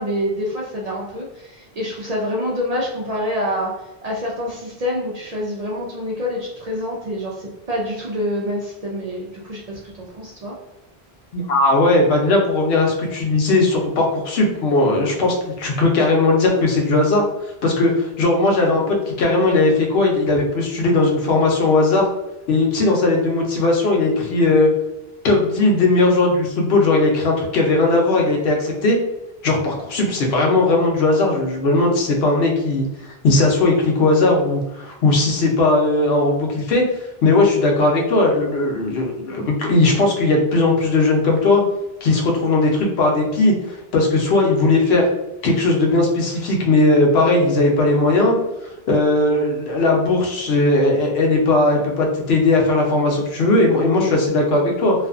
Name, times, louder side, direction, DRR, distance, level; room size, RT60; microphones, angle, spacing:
voice 1, 0.0-3.7 4.0-10.5, left 1 dB, 50° right, -3 dB, 0.5 m, -26 dB
voice 2, 11.3-17.2 17.6-22.1 22.5-24.7 25.2-29.0 29.4-36.8 37.2-41.6 42.0-45.0 45.4-48.4 48.9-54.9, left 2 dB, 75° left, 0 dB, 0.9 m, -18 dB
2.5 x 2.3 x 2.4 m, 0.96 s
omnidirectional pair, 1.1 m